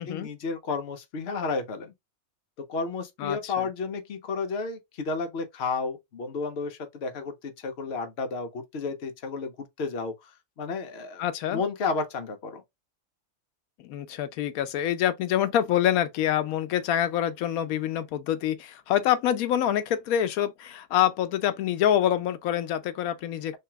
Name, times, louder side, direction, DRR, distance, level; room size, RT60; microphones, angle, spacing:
voice 1, 0.0-1.9 2.7-10.3 10.6-11.2 11.5-12.6, left 4 dB, 55° left, 0.9 m, -32 dB
voice 2, 3.2-3.5 11.2-11.6 13.8-23.6, left 11 dB, 90° left, 1.1 m, -26 dB
3.3 x 2.9 x 3.4 m
omnidirectional pair, 1.4 m